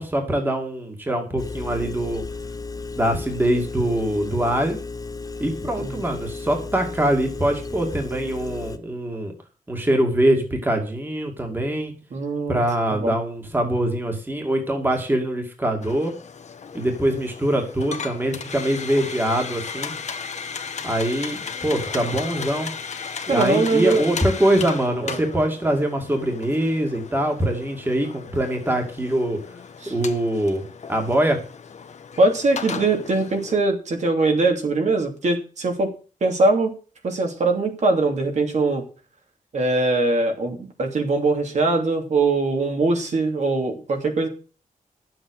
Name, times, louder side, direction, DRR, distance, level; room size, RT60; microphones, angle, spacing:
voice 1, 0.0-2.2 3.0-4.8 5.4-9.3 9.7-11.9 12.5-16.1 16.7-19.9 20.8-22.7 23.3-29.4 29.9-30.6 30.9-31.4, right 1 dB, 15° right, 3 dB, 2.3 m, -23 dB
Engine, 1.4-8.8, left 3 dB, 25° left, 0.9 m, -34 dB
voice 2, 12.1-12.6 12.9-13.2 23.3-24.1 25.0-25.2 29.8-29.9 32.2-35.9 36.2-36.7 37.0-38.8 39.5-44.3, right 3 dB, 60° right, 3 dB, 2.8 m, -21 dB
sound 1, 15.8-33.5, left 6 dB, 55° left, 1.3 m, -35 dB
11.5 x 7.8 x 6.4 m, 0.36 s
wide cardioid pair, 175°, 14 cm